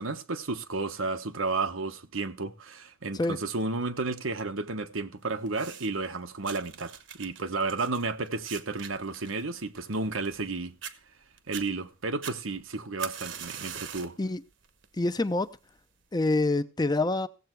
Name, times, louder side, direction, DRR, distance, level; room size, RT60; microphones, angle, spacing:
voice 1, 0.0-10.7 11.5-14.2, right 3 dB, 85° right, 1.2 m, -32 dB
sound 1, 5.5-6.1 6.4-10.5 10.8-10.9 11.4-11.7 12.2-14.2 14.6-15.0 15.8-15.9, right 8 dB, 65° right, 1.2 m, -42 dB
voice 2, 15.0-15.5 16.1-17.3, left 2 dB, 20° left, 0.6 m, -26 dB
16.5 x 7.8 x 4.6 m
head